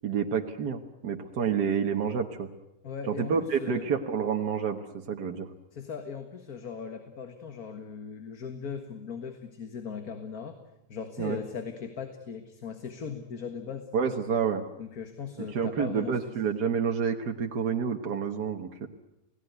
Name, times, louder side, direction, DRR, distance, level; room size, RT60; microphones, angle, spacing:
voice 1, 0.0-2.5 3.1-5.5 11.2-11.4 13.9-14.6 15.4-18.9, right 6 dB, 85° right, 3 dB, 1.9 m, -29 dB
voice 2, 2.8-3.9 5.7-10.6 10.9-13.9 14.8-16.2, left 6 dB, 65° left, 7 dB, 2.1 m, -38 dB
29.5 x 18.0 x 9.4 m, 0.90 s
omnidirectional pair, 1.7 m